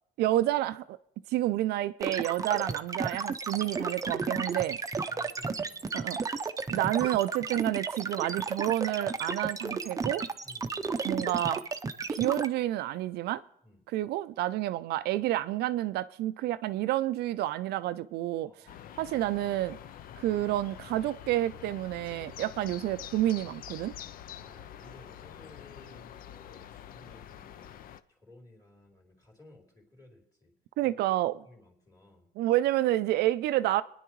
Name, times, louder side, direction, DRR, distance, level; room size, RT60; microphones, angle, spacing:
voice 1, 0.2-1.0 1.3-4.8 5.9-6.2 6.7-10.2 11.0-11.6 12.1-13.4 13.9-18.5 19.0-19.8 20.2-23.9 30.8-31.3 32.4-33.8, right 14 dB, 75° right, 0.4 m, -29 dB
sound 1, 2.0-12.5, right 4 dB, 20° right, 0.6 m, -33 dB
voice 2, 5.0-6.1 10.4-11.0 13.6-13.8 18.4-19.0 24.3-30.5 30.8-30.9 31.4-32.3, left 2 dB, 20° left, 3.2 m, -56 dB
sound 2, 18.7-28.0, left 10 dB, 60° left, 0.5 m, -46 dB
25.5 x 10.0 x 3.1 m
cardioid pair, 110°, 17 cm